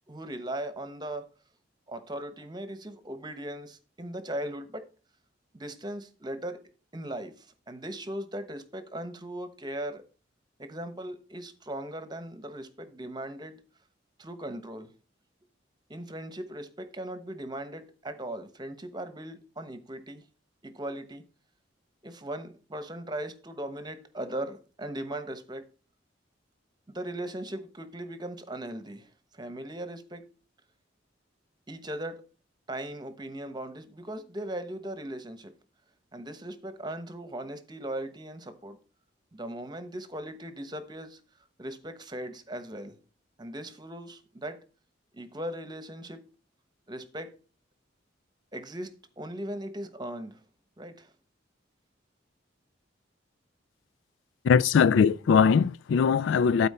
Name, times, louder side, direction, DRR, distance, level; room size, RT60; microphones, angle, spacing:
voice 1, 0.1-1.3 1.9-4.9 5.5-6.6 6.9-10.0 10.6-13.6 14.2-14.9 15.9-20.2 20.6-21.2 22.0-25.6 26.9-30.2 31.7-32.2 32.7-35.5 36.1-38.8 39.3-41.2 41.6-43.0 43.4-44.6 45.1-46.2 46.9-47.3 48.5-48.9 49.2-50.4 50.8-51.1, right 1 dB, 20° right, 1.0 m, -38 dB
voice 2, 54.4-56.7, left 6 dB, 75° left, 0.3 m, -21 dB
12.0 x 4.3 x 4.3 m
head